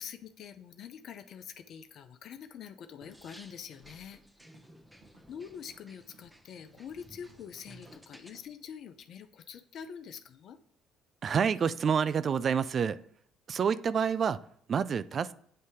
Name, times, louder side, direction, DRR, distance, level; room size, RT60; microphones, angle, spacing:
voice 1, 0.0-4.2 5.3-10.6, left 7 dB, 60° left, 9 dB, 0.4 m, -45 dB
sound 1, 3.0-8.5, equal, 5° right, 0.8 m, -56 dB
Walk footsteps, 3.3-3.6 3.9-4.2 4.4-4.8 5.0-5.9 6.1-6.4 6.7-7.0 7.2-7.5 7.7-8.0 8.3-8.5, right 4 dB, 75° right, 1.2 m, -62 dB
voice 2, 11.2-13.0 13.5-15.3, right 7 dB, 50° right, 15 dB, 0.3 m, -28 dB
7.7 x 2.7 x 4.8 m, 0.63 s
hypercardioid pair, 60°, 0 cm